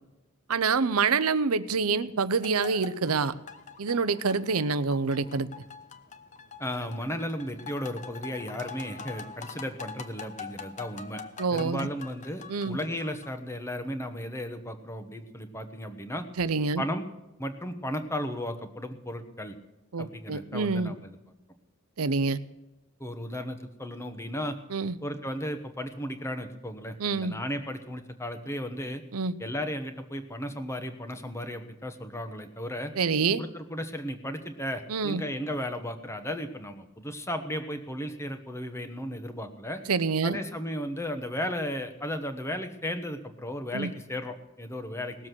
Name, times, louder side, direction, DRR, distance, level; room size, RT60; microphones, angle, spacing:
voice 1, 0.5-3.3 3.8-5.5 11.4-11.9 12.5-12.8 16.4-16.8 19.9-20.9 22.0-22.4 24.7-24.9 27.0-27.4 29.1-29.3 33.0-33.4 34.9-35.2 39.9-40.4 43.7-43.9, right 4 dB, 85° right, 15 dB, 0.7 m, -26 dB
sound 1, 2.3-13.3, left 5 dB, 35° left, 1.0 m, -44 dB
voice 2, 6.6-11.2 11.5-16.2 16.8-17.1 17.4-19.6 20.0-21.2 23.0-24.6 25.0-29.0 29.4-32.9 33.4-39.8 40.2-45.2, equal, 10° left, 7 dB, 1.2 m, -35 dB
19.0 x 7.4 x 6.2 m, 1.0 s
head